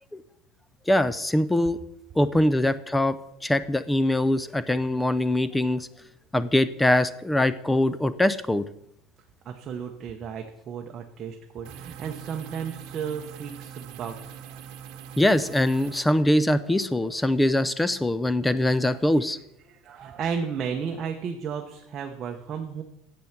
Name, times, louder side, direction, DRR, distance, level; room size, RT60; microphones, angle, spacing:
voice 1, 0.9-1.8 2.2-3.2 3.4-5.9 6.3-8.6 15.2-19.4, left 1 dB, 5° left, 15 dB, 0.4 m, -23 dB
voice 2, 9.4-14.6 16.6-17.1 18.4-19.0 19.3-19.4 19.7-22.8, right 6 dB, 30° right, 3 dB, 0.9 m, -34 dB
sound 1, 11.6-16.0, right 9 dB, 55° right, 1.2 m, -42 dB
10.5 x 7.8 x 5.9 m, 0.83 s
cardioid pair, 160°, 0 cm